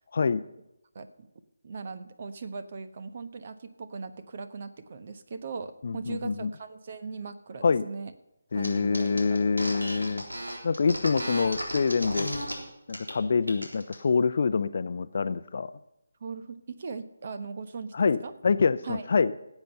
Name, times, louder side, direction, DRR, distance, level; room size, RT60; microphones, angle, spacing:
voice 1, 0.1-0.4 5.8-6.5 7.6-7.8 8.5-10.2 10.6-12.3 12.9-15.7 17.9-18.2 18.4-19.3, left 5 dB, 50° left, 13 dB, 0.6 m, -25 dB
voice 2, 0.9-1.3 1.6-8.1 8.5-9.4 16.2-17.9 18.2-18.3 18.8-19.1, right 4 dB, 45° right, 10 dB, 1.0 m, -39 dB
sound 1, 8.6-8.7 8.9-12.5 12.9-13.1 13.4-14.0, equal, 90° right, 3.5 m, -34 dB
17.0 x 8.2 x 5.6 m, 0.88 s
figure-of-eight pair, 155°, 0 cm